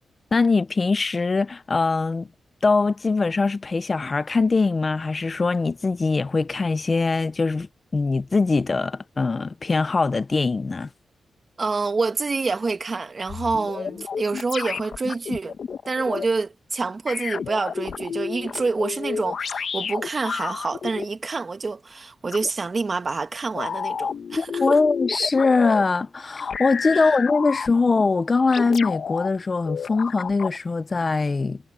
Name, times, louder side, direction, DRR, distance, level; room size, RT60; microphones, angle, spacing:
voice 1, 0.3-2.3 2.6-10.9 24.4-31.6, left 4 dB, 40° left, 0.8 m, -22 dB
voice 2, 11.6-15.5 15.9-24.8 26.9-27.0, right 4 dB, 40° right, 1.9 m, -27 dB
sound 1, 13.3-16.2 17.1-21.0 22.3-22.5 23.5-25.8 26.3-28.0 28.5-29.3 29.6-30.6, left 6 dB, 65° left, 1.7 m, -31 dB
cardioid pair, 60°, 0 cm